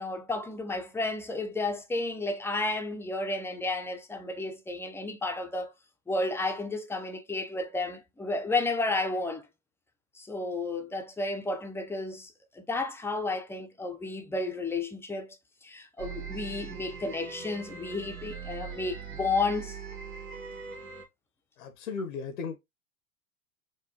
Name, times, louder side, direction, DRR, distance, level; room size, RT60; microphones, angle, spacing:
voice 1, 0.0-5.7 6.1-9.5 10.1-15.4 15.6-19.8, left 2 dB, 5° left, 0.5 m, -32 dB
sound 1, 16.0-21.1, right 6 dB, 80° right, 1.5 m, -41 dB
voice 2, 21.6-22.6, left 5 dB, 75° left, 0.8 m, -36 dB
4.7 x 2.2 x 2.8 m
hypercardioid pair, 100°, 41 cm